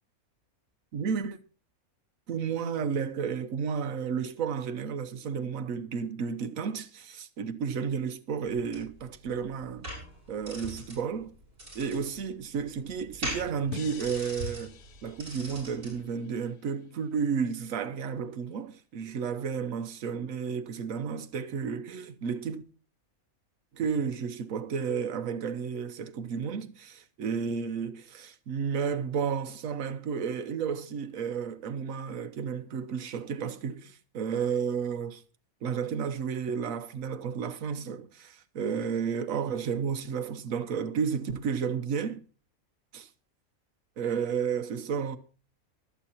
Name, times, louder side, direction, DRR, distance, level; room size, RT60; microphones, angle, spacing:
voice 1, 0.9-1.4 2.3-9.9 10.3-11.3 11.7-22.6 23.7-35.2 35.6-42.2 42.9-43.1 44.0-45.2, right 6 dB, 70° right, 1.3 m, -32 dB
sound 1, 8.5-16.0, right 1 dB, 45° right, 6.8 m, -41 dB
sound 2, 13.7-16.8, left 9 dB, 90° left, 1.3 m, -47 dB
24.0 x 8.2 x 2.8 m
omnidirectional pair, 1.5 m